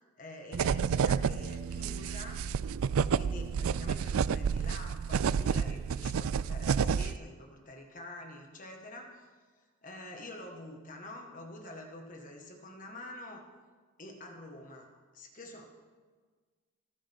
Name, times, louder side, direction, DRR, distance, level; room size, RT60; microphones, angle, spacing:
voice 1, 0.2-2.5 3.1-9.3 9.8-13.4 14.0-14.9 15.1-15.7, left 1 dB, 40° left, 2 dB, 1.7 m, -47 dB
sound 1, 0.5-7.2, right 6 dB, 80° right, 0.4 m, -30 dB
27.5 x 10.5 x 3.7 m, 1.5 s
head